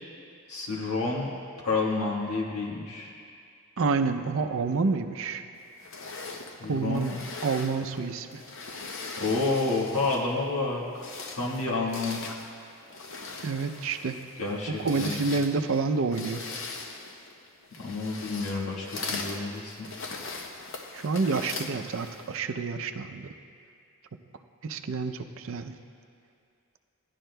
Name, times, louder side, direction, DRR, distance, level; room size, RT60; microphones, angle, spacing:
voice 1, 0.5-1.3 1.6-3.1 6.6-7.2 9.2-10.8 11.3-12.2 14.4-15.2 17.8-19.9, left 3 dB, 85° left, -4 dB, 1.4 m, -29 dB
voice 2, 3.8-5.4 6.7-7.1 7.4-8.4 13.4-14.2 14.8-16.4 20.9-23.3 24.6-25.7, right 4 dB, 65° right, 7 dB, 0.5 m, -28 dB
sound 1, 5.8-10.4 10.8-22.4, left 3 dB, 60° left, 0.7 m, -40 dB
16.0 x 11.5 x 2.2 m, 2.3 s
head